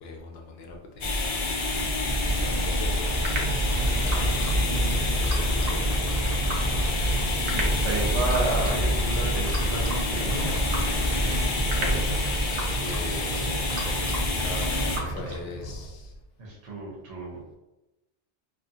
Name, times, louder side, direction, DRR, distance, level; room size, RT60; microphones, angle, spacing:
voice 1, 0.0-1.4 2.1-3.3 3.8-6.1 12.8-16.1, left 2 dB, 70° left, 2 dB, 0.8 m, -41 dB
sound 1, 1.0-15.0, left 1 dB, 50° left, 0.4 m, -27 dB
sound 2, 1.7-12.1, equal, 35° right, 0.5 m, -30 dB
sound 3, 3.2-15.9, right 2 dB, 65° right, 0.8 m, -33 dB
voice 2, 7.5-10.6 11.8-12.2 16.4-17.6, right 2 dB, 85° right, -4 dB, 1.1 m, -32 dB
2.7 x 2.6 x 2.5 m, 0.98 s
omnidirectional pair, 1.2 m